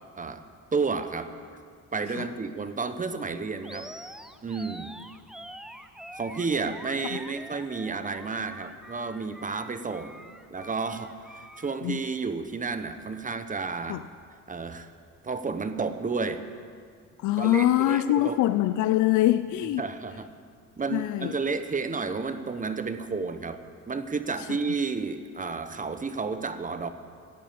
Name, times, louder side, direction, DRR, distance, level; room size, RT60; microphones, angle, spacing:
voice 1, 0.7-1.3 1.9-3.9 4.4-4.9 6.1-10.2 10.5-14.0 14.5-14.9 15.2-16.4 17.4-18.4 19.8-20.3 20.8-26.9, right 4 dB, 25° right, 10 dB, 0.8 m, -31 dB
Animal, 3.6-11.8, equal, ahead, 0.6 m, -45 dB
voice 2, 17.2-19.8 20.9-21.4, left 14 dB, 80° left, 12 dB, 0.5 m, -24 dB
12.5 x 8.5 x 8.7 m, 2.2 s
cardioid pair, 90°, 30 cm